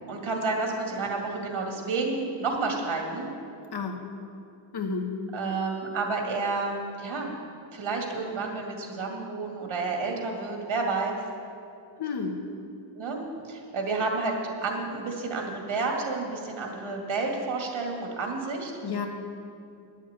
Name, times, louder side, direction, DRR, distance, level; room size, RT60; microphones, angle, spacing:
voice 1, 0.1-3.3 5.3-7.3 7.7-11.2 12.9-18.7, right 3 dB, 75° right, 1 dB, 2.2 m, -30 dB
voice 2, 4.7-5.1 12.0-12.4 18.8-19.1, left 5 dB, 55° left, 4 dB, 1.2 m, -31 dB
10.5 x 7.3 x 8.7 m, 2.5 s
wide cardioid pair, 160°, 48 cm